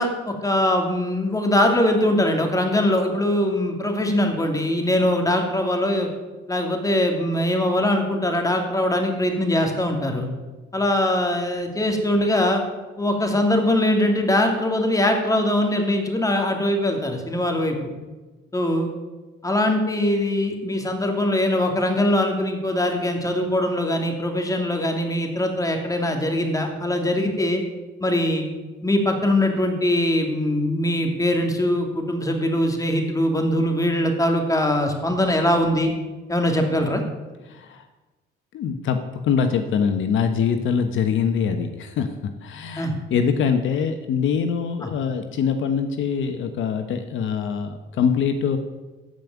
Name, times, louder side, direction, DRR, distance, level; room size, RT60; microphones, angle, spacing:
voice 1, 0.0-6.1 6.5-10.3 10.7-12.6 13.0-17.8 18.5-18.9 19.4-27.6 28.0-28.4 28.8-35.9 36.3-37.0 42.8-42.9 44.8-44.9, left 1 dB, 15° left, 3 dB, 2.6 m, -22 dB
voice 2, 37.5-37.8 38.5-39.0 39.2-48.6, left 6 dB, 75° left, 7 dB, 1.1 m, -23 dB
14.0 x 5.3 x 9.4 m, 1.2 s
cardioid pair, 90°, 20 cm